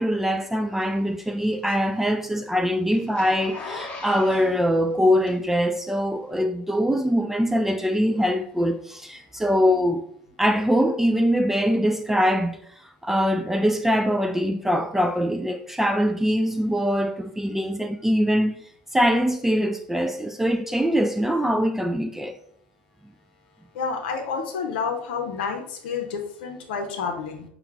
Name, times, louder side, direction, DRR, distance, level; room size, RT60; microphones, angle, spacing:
voice 1, 0.0-10.0 10.4-12.6 13.0-18.6 18.9-22.3, equal, 5° right, 0.3 m, -23 dB
Zipper (clothing), 0.8-5.8 6.3-6.4, left 3 dB, 20° left, 1.0 m, -39 dB
voice 2, 23.7-27.4, left 5 dB, 60° left, 0.7 m, -29 dB
5.7 x 2.3 x 3.2 m
figure-of-eight pair, 70°, 6 cm